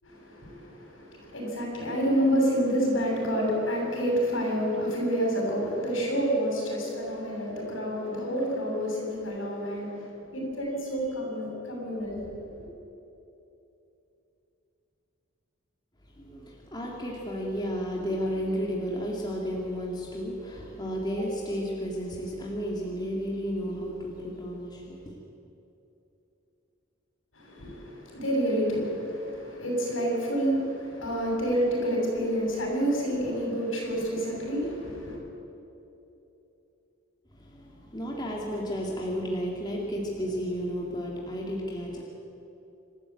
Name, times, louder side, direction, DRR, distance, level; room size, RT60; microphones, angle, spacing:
voice 1, 0.0-12.4 27.3-35.2, equal, 75° left, -1 dB, 7.1 m, -28 dB
voice 2, 16.0-25.1 37.3-42.0, equal, 20° left, -2 dB, 2.4 m, -32 dB
27.5 x 13.0 x 8.6 m, 2.9 s
head